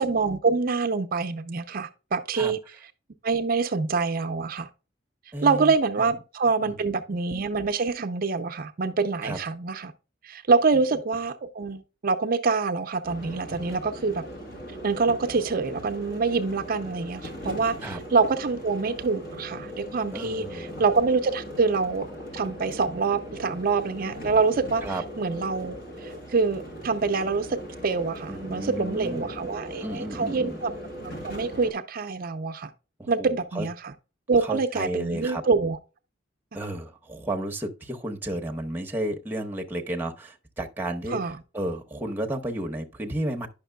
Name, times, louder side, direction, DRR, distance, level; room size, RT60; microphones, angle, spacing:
voice 1, 0.0-2.6 3.2-4.7 5.4-9.9 10.2-14.2 14.8-22.1 22.3-24.8 25.2-30.7 31.0-32.7 33.1-33.9 34.3-35.8 41.1-41.4, right 4 dB, 50° right, 0.5 m, -26 dB
voice 2, 5.3-5.7 6.6-6.9 9.2-9.4 17.8-18.0 20.1-20.7 24.8-25.0 28.3-29.3 29.8-30.6 33.0-33.3 33.5-33.7 34.4-35.4 36.5-43.5, right 1 dB, 10° right, 0.9 m, -32 dB
sound 1, 13.0-31.7, equal, 50° left, 2.0 m, -39 dB
10.0 x 5.9 x 2.2 m
head